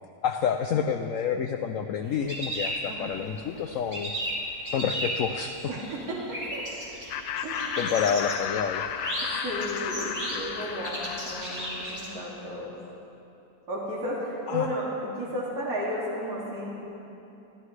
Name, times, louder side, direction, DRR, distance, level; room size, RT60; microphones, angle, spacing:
voice 1, 0.2-4.1 4.7-5.6 7.8-8.8 14.5-14.7, left 7 dB, 65° left, 6 dB, 0.8 m, -28 dB
sound 1, 2.0-3.4 3.7-12.1, right 1 dB, 45° right, 4.0 m, -35 dB
voice 2, 5.7-6.7 7.4-7.9 9.2-12.7 13.7-16.8, equal, 60° right, -5 dB, 2.9 m, -33 dB
Laughter, 7.1-12.4, left 8 dB, 90° left, 1.2 m, -34 dB
24.5 x 15.0 x 3.3 m, 2.9 s
omnidirectional pair, 1.8 m